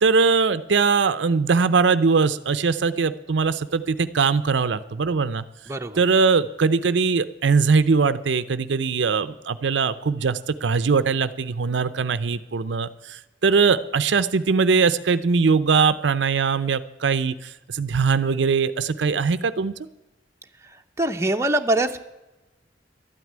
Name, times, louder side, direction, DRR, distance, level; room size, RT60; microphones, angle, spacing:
voice 1, 0.0-5.4 6.0-19.7, right 5 dB, 70° right, 13 dB, 0.5 m, -21 dB
voice 2, 5.7-6.0 21.0-22.0, right 2 dB, 15° right, 4 dB, 0.8 m, -23 dB
12.0 x 9.4 x 9.4 m, 1.0 s
head